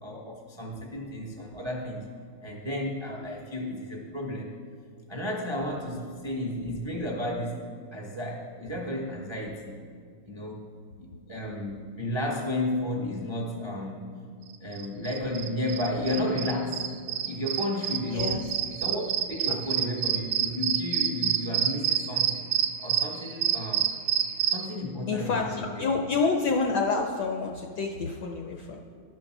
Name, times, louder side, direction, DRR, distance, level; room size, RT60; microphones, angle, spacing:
voice 1, 0.0-2.1 2.4-4.5 5.1-7.6 7.9-9.8 10.3-10.7 11.0-14.1 14.6-16.9 17.2-22.5 22.8-23.9 24.5-25.9, left 1 dB, 25° right, -1 dB, 0.5 m, -32 dB
sound 1, 14.7-24.7, right 10 dB, 70° right, 1.3 m, -27 dB
voice 2, 18.1-18.6 19.5-19.6 25.1-28.8, left 4 dB, 70° left, 2 dB, 1.0 m, -28 dB
11.5 x 5.2 x 6.0 m, 2.2 s
omnidirectional pair, 2.3 m